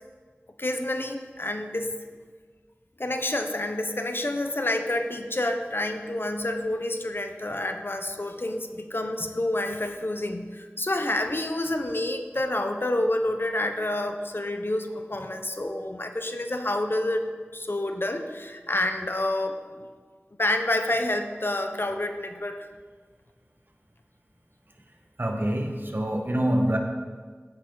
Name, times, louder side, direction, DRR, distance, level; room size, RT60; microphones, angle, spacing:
voice 1, 0.6-1.9 3.0-17.3 17.5-19.9 20.4-22.7, left 1 dB, 55° left, 6 dB, 1.0 m, -28 dB
voice 2, 25.2-26.8, right 1 dB, 50° right, 3 dB, 1.5 m, -25 dB
15.5 x 8.8 x 4.0 m, 1.5 s
wide cardioid pair, 40°, 4 cm